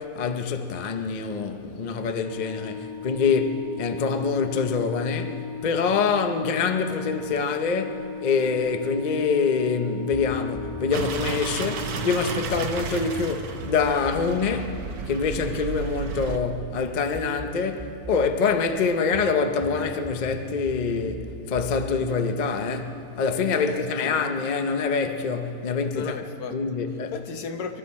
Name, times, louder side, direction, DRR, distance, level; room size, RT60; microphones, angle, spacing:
voice 1, 0.0-26.1 26.5-27.1, left 5 dB, 45° left, 0.6 m, -25 dB
Organ, 2.2-13.0, left 6 dB, 25° right, 1.5 m, -38 dB
sound 1, 10.1-11.4 12.5-16.3 17.1-18.4 19.1-23.1, right 1 dB, 5° right, 1.7 m, -42 dB
sound 2, 10.9-16.4, right 6 dB, 70° right, 1.4 m, -33 dB
voice 2, 23.6-24.2 25.9-26.6 27.1-27.8, left 6 dB, 70° left, 1.4 m, -35 dB
25.0 x 13.0 x 4.2 m
omnidirectional pair, 1.7 m